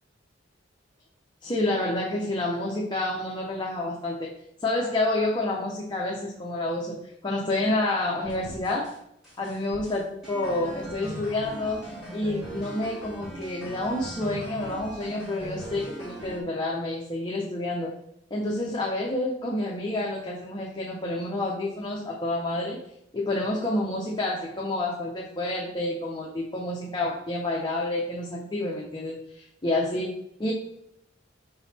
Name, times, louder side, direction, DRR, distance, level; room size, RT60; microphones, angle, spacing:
voice 1, 1.4-4.3 4.6-8.9 9.4-17.9 18.3-22.8 23.1-30.5, left 2 dB, 25° left, -3 dB, 0.8 m, -29 dB
sound 1, 8.2-9.0 9.2-16.4, equal, ahead, 2.4 m, -39 dB
5.9 x 3.9 x 4.2 m, 0.76 s
head